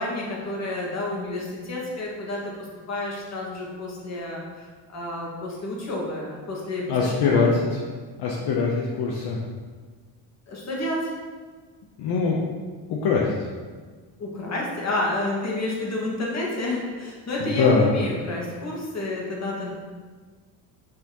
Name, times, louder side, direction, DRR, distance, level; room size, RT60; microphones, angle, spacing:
voice 1, 0.0-2.4 2.9-7.6 10.5-11.1 14.2-19.7, left 1 dB, 35° left, -3 dB, 1.9 m, -30 dB
voice 2, 6.9-7.5 8.2-9.4 12.0-12.4 12.9-13.2 17.4-17.9, left 5 dB, 60° left, -2 dB, 0.9 m, -22 dB
6.1 x 6.0 x 3.0 m, 1.5 s
cardioid pair, 105°, 44 cm